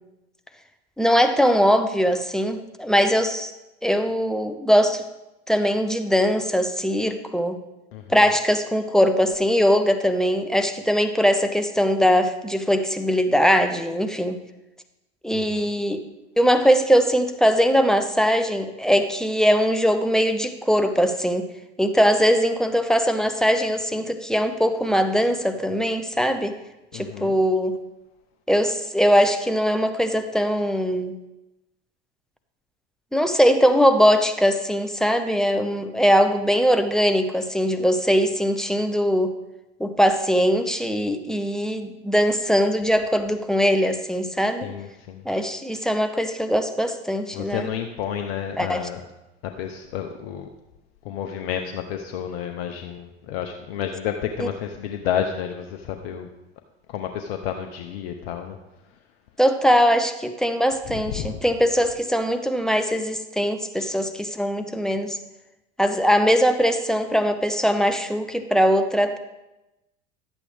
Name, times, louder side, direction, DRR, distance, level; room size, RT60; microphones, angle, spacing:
voice 1, 1.0-3.5 3.8-5.0 5.5-7.6 8.1-14.4 15.2-16.0 16.4-21.5 21.8-26.5 26.9-27.8 28.5-31.1 33.1-39.3 39.8-44.7 45.2-47.7 48.6-48.9 54.4-54.5 59.4-65.2 65.8-69.2, equal, ahead, 7 dB, 0.8 m, -21 dB
voice 2, 7.9-8.2 15.3-15.7 26.9-27.4 44.6-45.2 47.3-49.0 49.4-50.5 51.0-56.3 56.9-58.6 60.9-61.4 63.8-63.9, left 9 dB, 65° left, 5 dB, 0.8 m, -31 dB
11.0 x 8.3 x 3.5 m, 0.96 s
hypercardioid pair, 80°, 34 cm